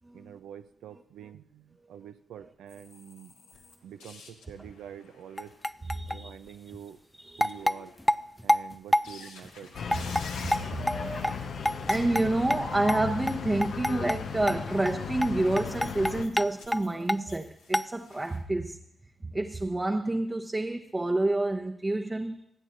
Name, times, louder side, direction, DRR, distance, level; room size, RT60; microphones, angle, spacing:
voice 1, 0.1-3.3 3.8-5.6 6.1-7.0 7.4-7.9 8.4-9.7, right 9 dB, 80° right, 10 dB, 0.5 m, -46 dB
sound 1, 2.7-6.5 6.8-6.9 7.4-8.4 9.0-18.4, left 4 dB, 90° left, 1.2 m, -51 dB
sound 2, 5.4-6.2 6.7-6.8 7.4-9.1 9.4-9.5 9.9-10.2 10.5-12.2 12.5-12.6 12.9-13.0 13.3-13.4 13.6-14.2 14.5-14.6 14.9-15.0 15.2-15.3 15.6-16.8 17.1-17.2 17.7-17.9, equal, 5° left, 0.3 m, -26 dB
voice 2, 6.0-6.3 7.2-7.5 10.1-11.6 11.9-18.8 19.2-22.4, right 2 dB, 25° right, 2 dB, 0.9 m, -29 dB
sound 3, 9.7-16.2, left 6 dB, 70° left, 0.7 m, -36 dB
24.5 x 9.0 x 2.6 m, 0.76 s
hypercardioid pair, 40°, 0 cm